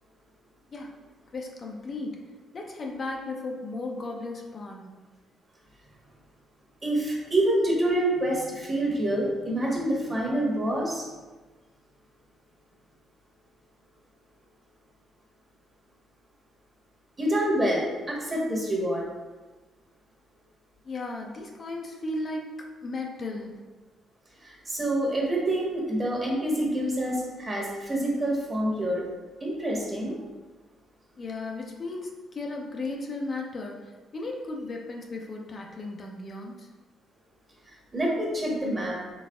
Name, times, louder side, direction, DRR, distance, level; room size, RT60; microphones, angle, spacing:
voice 1, 1.3-2.2 2.5-5.0 20.8-23.5 31.2-36.7, left 2 dB, 45° left, 0 dB, 0.5 m, -35 dB
voice 2, 6.8-11.1 17.2-19.0 24.4-29.0 29.4-30.2 37.9-39.0, right 1 dB, 30° right, -2 dB, 1.1 m, -27 dB
4.1 x 3.4 x 2.3 m, 1.3 s
cardioid pair, 90°, 0 cm